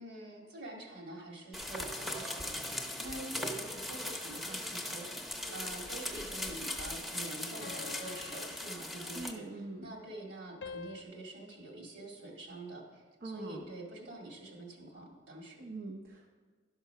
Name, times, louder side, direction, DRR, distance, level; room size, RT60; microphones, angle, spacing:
voice 1, 0.0-15.6, right 2 dB, 70° right, 0 dB, 2.2 m, -46 dB
sound 1, 1.5-9.3, left 1 dB, ahead, 0.8 m, -39 dB
sound 2, 5.5-6.5 7.6-9.5 10.6-11.0, left 6 dB, 70° left, 0.5 m, -49 dB
voice 2, 9.2-9.9 13.2-13.7 15.6-16.3, right 2 dB, 55° right, 2 dB, 0.7 m, -43 dB
11.5 x 5.9 x 5.6 m, 1.5 s
head